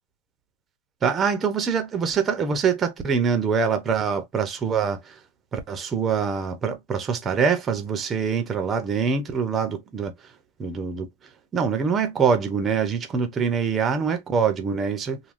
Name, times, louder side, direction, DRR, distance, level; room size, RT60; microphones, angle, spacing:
voice 1, 1.0-5.2 5.5-10.1 10.6-11.1 11.5-15.2, right 6 dB, 20° right, 0.7 m, -24 dB
3.3 x 2.2 x 2.5 m
supercardioid pair, 145°, 0 cm